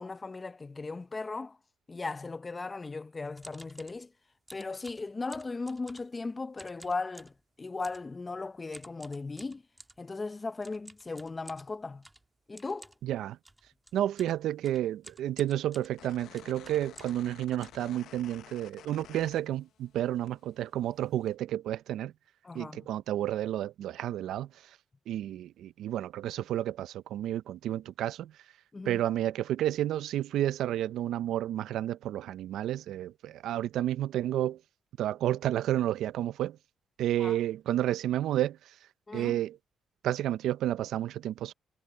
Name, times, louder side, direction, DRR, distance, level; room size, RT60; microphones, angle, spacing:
voice 1, 0.0-1.6 1.9-4.1 4.5-7.3 7.6-9.6 10.0-12.1 12.5-12.9 22.4-22.9 28.7-29.0 37.2-37.4 39.1-39.4, left 3 dB, 25° left, 0.8 m, -37 dB
sound 1, 3.4-4.0 4.5-6.2 6.5-7.4 7.8-8.1 8.7-10.0 10.6-17.3 17.6-18.5 18.9-19.0 19.2-19.5 19.8-20.0 20.6-20.7 20.9-21.2, right 2 dB, 15° right, 1.5 m, -53 dB
voice 2, 13.0-13.4 13.9-22.1 22.5-24.5 25.1-28.3 28.8-34.6 35.0-36.6 37.0-38.6 39.1-39.6 40.0-41.5, right 12 dB, 80° right, 0.5 m, -31 dB
sound 2, 15.9-20.0 20.3-21.3, left 11 dB, 75° left, 0.6 m, -52 dB
cardioid pair, 90°, 0 cm